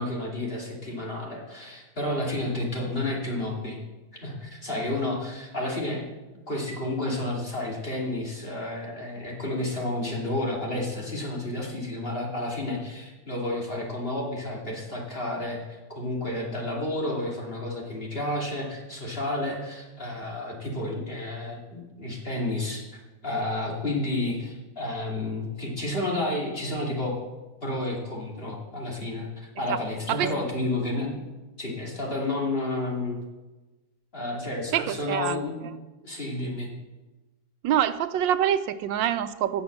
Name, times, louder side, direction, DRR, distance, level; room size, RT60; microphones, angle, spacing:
voice 1, 0.0-3.8 4.2-6.0 6.5-22.8 23.2-27.1 27.6-31.2 31.6-33.2 34.1-35.6 36.0-36.7, left 1 dB, 30° left, -2 dB, 3.0 m, -31 dB
voice 2, 34.7-35.4 37.6-39.6, right 10 dB, 90° right, 12 dB, 1.4 m, -25 dB
16.5 x 7.0 x 6.7 m, 1.2 s
omnidirectional pair, 2.0 m